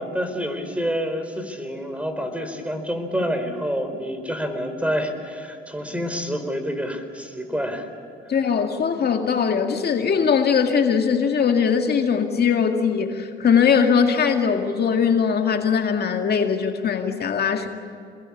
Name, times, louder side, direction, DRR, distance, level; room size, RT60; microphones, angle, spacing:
voice 1, 0.0-7.9, equal, 5° right, 7 dB, 4.4 m, -28 dB
voice 2, 8.3-17.7, left 6 dB, 55° left, 4 dB, 2.1 m, -20 dB
27.5 x 21.5 x 8.6 m, 2.6 s
cardioid pair, 90°, 20 cm